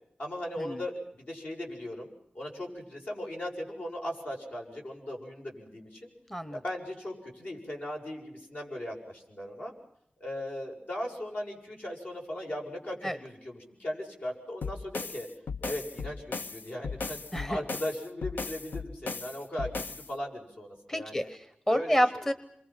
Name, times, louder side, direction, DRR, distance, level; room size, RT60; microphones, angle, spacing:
voice 1, 0.2-6.1 6.5-9.7 10.2-15.3 15.6-21.3 21.7-22.0, left 1 dB, 65° left, 0 dB, 7.3 m, -38 dB
voice 2, 6.3-6.6 13.0-13.2 17.3-17.6 20.9-22.3, equal, 15° left, 12 dB, 1.1 m, -29 dB
sound 1, 14.6-20.1, left 4 dB, 85° left, 1.0 m, -37 dB
28.0 x 24.0 x 5.8 m, 0.72 s
wide cardioid pair, 105°, 3 cm